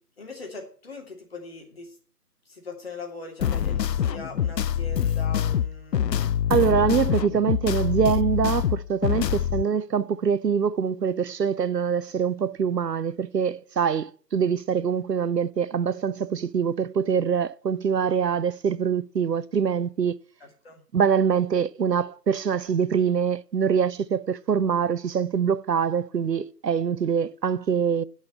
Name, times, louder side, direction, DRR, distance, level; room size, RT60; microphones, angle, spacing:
voice 1, 0.2-1.9 2.5-6.1 20.4-20.8, left 3 dB, 35° left, 2.8 m, -41 dB
sound 1, 3.4-9.6, left 9 dB, 80° left, 0.5 m, -25 dB
voice 2, 6.5-20.2 20.9-28.0, right 7 dB, 80° right, 0.7 m, -24 dB
10.5 x 5.6 x 8.4 m
figure-of-eight pair, 165°, 49 cm